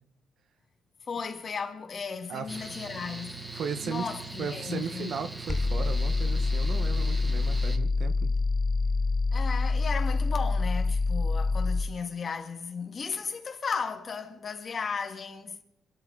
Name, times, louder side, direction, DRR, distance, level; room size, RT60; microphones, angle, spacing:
voice 1, 1.1-3.5 3.8-5.2 9.3-15.6, left 5 dB, 45° left, 2.7 m, -35 dB
voice 2, 2.3-2.7 3.5-4.1 4.4-8.3, right 6 dB, 65° right, 1.7 m, -36 dB
Mechanical fan, 2.5-7.8, right 3 dB, 10° right, 1.7 m, -41 dB
sound 1, 5.5-11.9, left 3 dB, 20° left, 0.8 m, -26 dB
26.5 x 13.0 x 4.3 m
cardioid pair, 90°, 0 cm